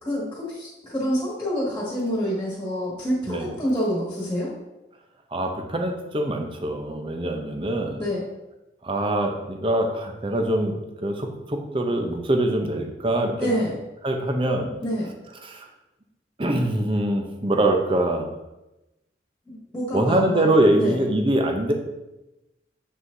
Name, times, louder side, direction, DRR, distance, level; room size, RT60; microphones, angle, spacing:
voice 1, 0.0-4.5 8.0-8.2 13.4-13.8 14.8-15.1 19.5-20.5 20.8-21.0, equal, 10° left, -6 dB, 2.0 m, -27 dB
voice 2, 5.3-8.0 8.8-13.6 14.0-14.7 15.4-15.7 16.4-18.3 19.9-21.7, right 1 dB, 30° right, 4 dB, 0.7 m, -23 dB
7.6 x 6.2 x 2.7 m, 0.97 s
head